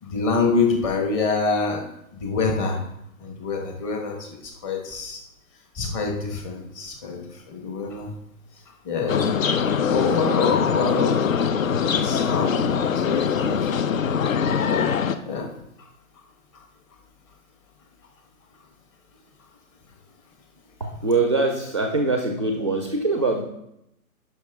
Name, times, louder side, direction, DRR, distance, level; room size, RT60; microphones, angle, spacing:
voice 1, 0.0-1.8 2.2-2.8 3.2-5.2 5.7-8.1 8.7-9.3 9.9-11.2 11.9-12.6 12.9-13.8 14.6-14.9 15.3-15.5 15.8-15.9 16.5-16.6, left 4 dB, 20° left, 1 dB, 1.3 m, -26 dB
sound 1, 9.1-15.2, left 7 dB, 65° left, 0.8 m, -22 dB
voice 2, 20.8-23.4, right 3 dB, 20° right, 3 dB, 0.4 m, -23 dB
10.5 x 5.9 x 3.6 m, 0.82 s
hypercardioid pair, 155°, 45 cm